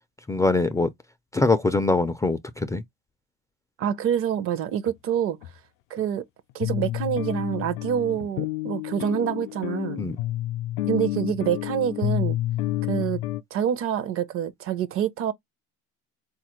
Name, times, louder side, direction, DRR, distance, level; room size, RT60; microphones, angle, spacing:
voice 1, 0.3-0.9 1.3-2.8 10.0-10.2, left 3 dB, 10° left, 0.3 m, -23 dB
voice 2, 3.8-5.4 5.9-6.2 6.5-10.0 10.9-12.4 12.9-13.2 13.5-15.3, right 9 dB, 50° right, 0.6 m, -26 dB
sound 1, 4.9-5.0 5.4-5.5 6.0-6.1 6.6-13.4, left 15 dB, 75° left, 0.4 m, -29 dB
3.9 x 2.4 x 2.9 m
supercardioid pair, 110°, 29 cm